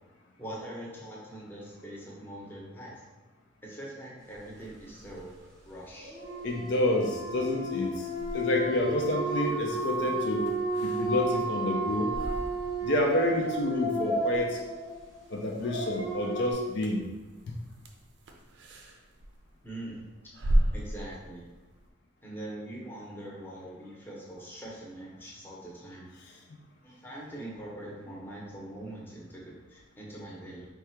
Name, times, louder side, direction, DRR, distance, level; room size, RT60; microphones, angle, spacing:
voice 1, 0.4-3.0 3.6-5.3 5.6-6.2 19.6-20.0 20.7-21.4 22.2-26.1 26.8-30.7, right 1 dB, 10° left, -5 dB, 0.8 m, -43 dB
sound 1, 4.3-21.9, right 1 dB, 65° right, 0.5 m, -38 dB
sound 2, 6.0-16.5, right 1 dB, 15° right, 0.9 m, -32 dB
voice 2, 6.4-8.1 8.3-10.5 10.8-12.2 12.8-14.6 15.3-17.0 17.5-17.6 26.2-26.4, left 1 dB, 60° left, 0 dB, 0.4 m, -29 dB
3.7 x 2.3 x 4.3 m, 1.2 s
head